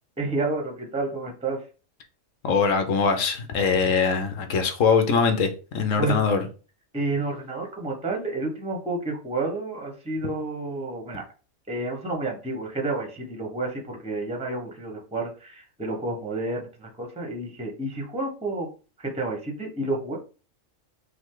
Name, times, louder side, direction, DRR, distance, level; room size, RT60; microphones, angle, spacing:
voice 1, 0.2-1.6 6.0-6.2 6.9-11.2 11.7-18.7 19.0-20.2, right 2 dB, 5° right, 0.7 m, -30 dB
voice 2, 2.4-6.5, left 5 dB, 75° left, 1.1 m, -22 dB
5.6 x 2.1 x 3.7 m
omnidirectional pair, 1.4 m